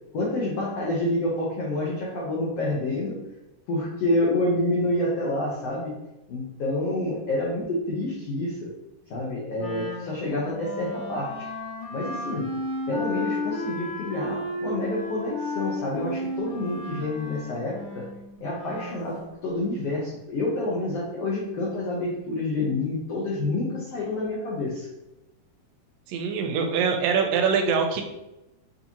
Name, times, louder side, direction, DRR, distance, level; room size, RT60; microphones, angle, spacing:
voice 1, 0.1-3.2 3.7-5.9 6.3-8.7 9.1-11.4 11.9-12.5 12.9-18.0 18.4-24.9, left 2 dB, 80° left, -5 dB, 1.4 m, -28 dB
Wind instrument woodwind instrument, 9.6-19.0, left 1 dB, 60° left, 1.2 m, -33 dB
voice 2, 26.1-28.0, right 6 dB, 85° right, 4 dB, 2.3 m, -23 dB
6.6 x 2.7 x 2.9 m, 0.95 s
omnidirectional pair, 4.0 m